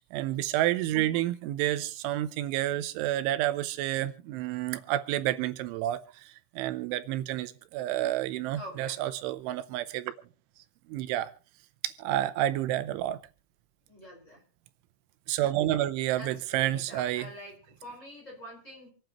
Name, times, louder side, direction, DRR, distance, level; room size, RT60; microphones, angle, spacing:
voice 1, 0.1-10.1 10.9-11.3 11.8-13.2 15.3-17.3, right 14 dB, 85° right, 11 dB, 3.1 m, -30 dB
voice 2, 8.5-9.0 13.9-14.4 16.1-18.9, equal, 15° left, -1 dB, 4.7 m, -45 dB
27.0 x 9.1 x 3.0 m, 0.37 s
omnidirectional pair, 5.4 m